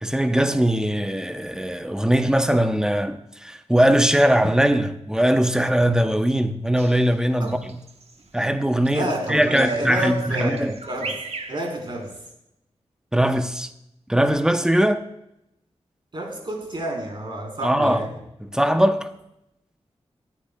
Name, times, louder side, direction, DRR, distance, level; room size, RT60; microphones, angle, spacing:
voice 1, 0.0-7.8 8.3-10.7 13.1-13.7 14.1-15.0 17.6-18.0 18.4-19.1, right 1 dB, 5° right, 0.7 m, -20 dB
Bird vocalization bird call bird song, 6.8-12.3, right 3 dB, 65° right, 1.1 m, -38 dB
voice 2, 8.9-11.1 11.5-12.1 16.1-18.2, right 1 dB, 45° right, 3.7 m, -29 dB
23.0 x 10.0 x 2.2 m
wide cardioid pair, 120°, 11 cm